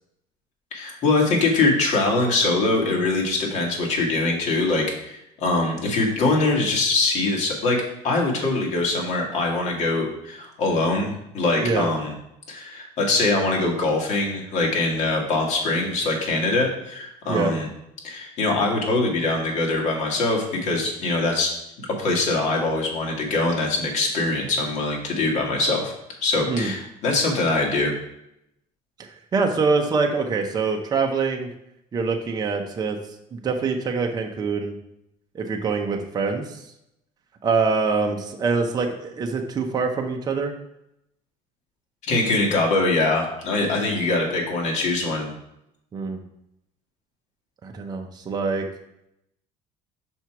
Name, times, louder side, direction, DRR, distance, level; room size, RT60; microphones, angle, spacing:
voice 1, 0.7-7.8 8.0-12.1 12.5-17.7 18.0-21.5 22.0-25.9 26.2-27.9 42.0-45.3, left 2 dB, 55° left, -1 dB, 1.8 m, -23 dB
voice 2, 29.0-31.5 31.9-33.0 33.3-34.7 35.3-36.6 37.4-40.5 45.9-46.2 47.6-48.6, right 4 dB, 30° right, 3 dB, 0.7 m, -24 dB
5.9 x 4.4 x 4.5 m, 0.81 s
cardioid pair, 135°, 14 cm